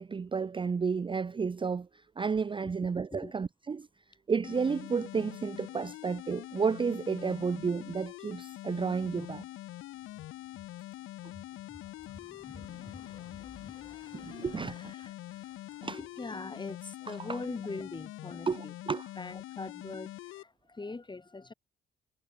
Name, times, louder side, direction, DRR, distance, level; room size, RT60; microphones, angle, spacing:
voice 1, 0.0-1.9 2.2-3.9 4.3-9.4 14.1-14.8 15.8-16.0 17.1-17.4 18.5-19.1, right 5 dB, 25° right, 0.5 m, -32 dB
sound 1, 4.4-20.4, left 16 dB, 85° left, 0.5 m, -45 dB
voice 2, 12.0-18.7 19.2-21.5, left 3 dB, 20° left, 2.8 m, -43 dB
cardioid pair, 85°, 20 cm